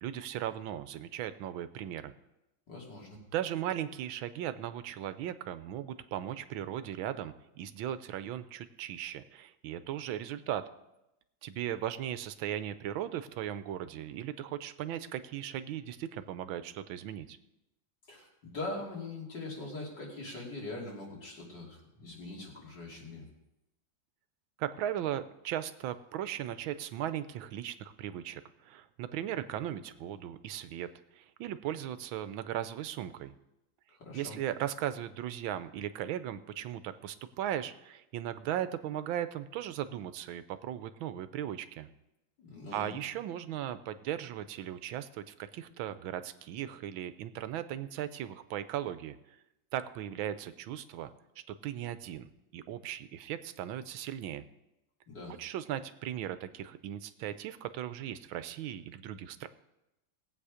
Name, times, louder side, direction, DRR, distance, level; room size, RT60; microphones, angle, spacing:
voice 1, 0.0-2.1 3.3-10.6 11.4-17.4 24.6-30.9 31.1-33.3 34.1-41.9 42.7-49.1 49.7-51.1 51.5-54.4 55.4-59.5, right 11 dB, 85° right, 12 dB, 1.5 m, -37 dB
voice 2, 2.7-3.2 18.1-23.3 34.0-34.4 42.4-43.0 55.1-55.4, left 2 dB, 60° left, -3 dB, 3.6 m, -42 dB
19.0 x 8.2 x 5.0 m, 0.91 s
omnidirectional pair, 2.1 m